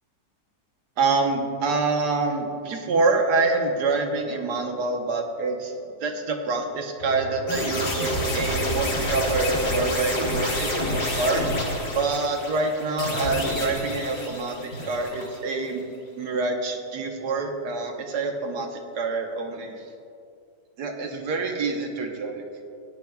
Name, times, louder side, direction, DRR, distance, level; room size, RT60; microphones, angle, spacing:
voice 1, 1.0-5.7 6.0-11.5 11.9-15.8 16.2-19.8 20.8-22.4, right 3 dB, 75° right, 3 dB, 1.6 m, -26 dB
sound 1, 7.0-12.7, right 4 dB, 25° left, 0.9 m, -33 dB
sound 2, 7.5-15.6, left 1 dB, 60° left, 2.2 m, -29 dB
17.0 x 10.0 x 2.4 m, 2.4 s
omnidirectional pair, 1.8 m